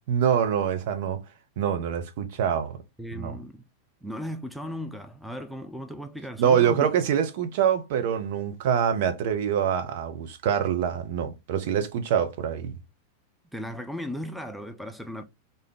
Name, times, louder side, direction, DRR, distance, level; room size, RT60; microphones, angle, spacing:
voice 1, 0.1-1.2 1.6-2.8 3.1-3.3 6.4-12.7, right 8 dB, 50° right, 0.7 m, -25 dB
voice 2, 3.0-3.6 4.0-6.9 13.5-15.2, equal, ahead, 0.5 m, -36 dB
3.3 x 2.7 x 3.7 m
figure-of-eight pair, 90°, 0 cm